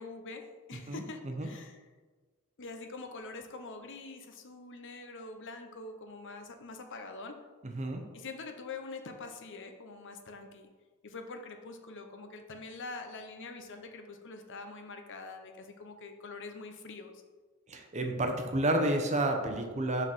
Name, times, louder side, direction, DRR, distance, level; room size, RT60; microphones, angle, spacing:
voice 1, 0.0-1.8 2.6-7.4 8.1-10.7 11.0-17.2, left 3 dB, 55° left, 6 dB, 0.8 m, -45 dB
voice 2, 0.9-1.5 7.6-8.0 17.7-20.0, right 1 dB, 30° right, 4 dB, 0.8 m, -30 dB
5.6 x 5.4 x 5.5 m, 1.4 s
head